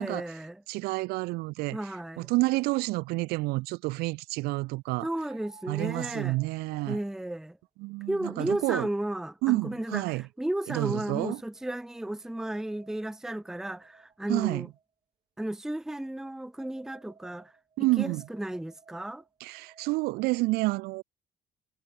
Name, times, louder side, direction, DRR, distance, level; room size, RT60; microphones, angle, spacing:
voice 1, 0.0-0.6 1.7-2.3 5.0-6.4 6.9-7.6 8.1-14.7 15.4-17.5 18.0-19.2, right 1 dB, 5° right, 0.6 m, -34 dB
voice 2, 0.7-1.8 2.2-5.1 5.7-7.0 7.8-8.9 9.4-10.2 10.7-11.4 14.3-14.7 17.8-18.2 19.4-21.0, right 23 dB, 85° right, 0.4 m, -29 dB
sound 1, 5.2-10.4 11.1-14.8 15.8-20.4, right 6 dB, 35° right, 5.6 m, -58 dB
cardioid pair, 100°, 16 cm